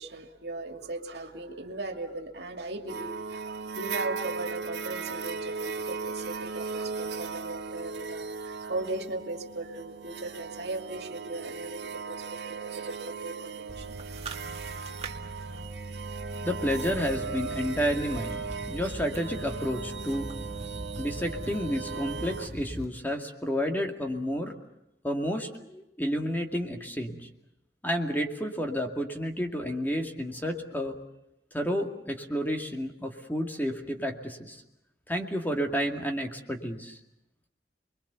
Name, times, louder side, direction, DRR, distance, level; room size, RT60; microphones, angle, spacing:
voice 1, 0.0-11.8 12.1-13.9, right 2 dB, 70° right, 5 dB, 2.5 m, -38 dB
sound 1, 2.9-22.5, right 5 dB, 85° right, 1.8 m, -37 dB
sound 2, 13.7-22.8, right 1 dB, 35° right, 2.3 m, -40 dB
voice 2, 16.4-20.3 21.0-24.5 25.0-27.3 27.8-31.0 31.5-34.6 35.1-37.0, equal, 10° left, 3 dB, 2.3 m, -31 dB
29.5 x 22.5 x 7.0 m, 0.85 s
head